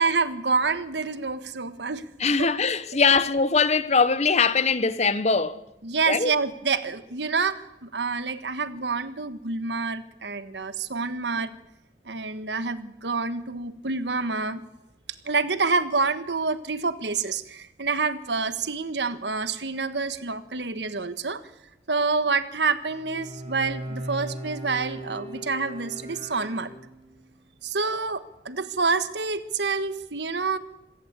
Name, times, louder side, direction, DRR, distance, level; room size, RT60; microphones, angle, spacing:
voice 1, 0.0-2.0 2.4-2.6 5.8-11.6 12.0-14.6 15.2-21.4 21.9-26.7 27.6-30.6, right 4 dB, 80° right, 1.4 m, -27 dB
voice 2, 2.2-5.6 6.1-6.3, left 4 dB, 40° left, 1.0 m, -21 dB
Bowed string instrument, 22.9-27.2, right 1 dB, 35° right, 4.6 m, -38 dB
26.5 x 16.0 x 8.3 m
head